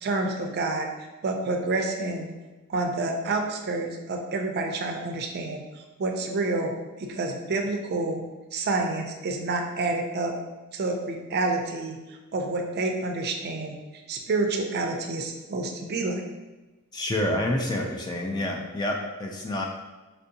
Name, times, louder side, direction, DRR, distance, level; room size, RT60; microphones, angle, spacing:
voice 1, 0.0-0.9 1.2-2.3 2.7-6.7 7.0-8.2 8.5-10.3 10.7-13.8 14.1-16.2, right 3 dB, 45° right, 3 dB, 0.4 m, -28 dB
voice 2, 16.9-19.6, left 1 dB, 20° left, 1 dB, 0.3 m, -28 dB
4.3 x 2.6 x 2.7 m, 1.1 s
head